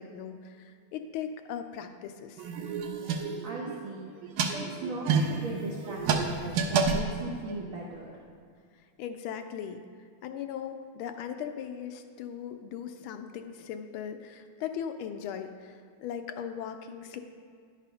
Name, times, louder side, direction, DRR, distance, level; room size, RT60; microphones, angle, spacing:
voice 1, 0.0-2.4 9.0-9.8 10.2-17.2, left 8 dB, 80° left, 7 dB, 1.4 m, -38 dB
sound 1, 2.4-3.8 4.2-7.6, right 5 dB, 85° right, 1.6 m, -29 dB
voice 2, 3.4-4.1 4.4-8.2, right 1 dB, 50° right, -3 dB, 1.1 m, -38 dB
10.5 x 4.1 x 5.6 m, 2.2 s
omnidirectional pair, 2.3 m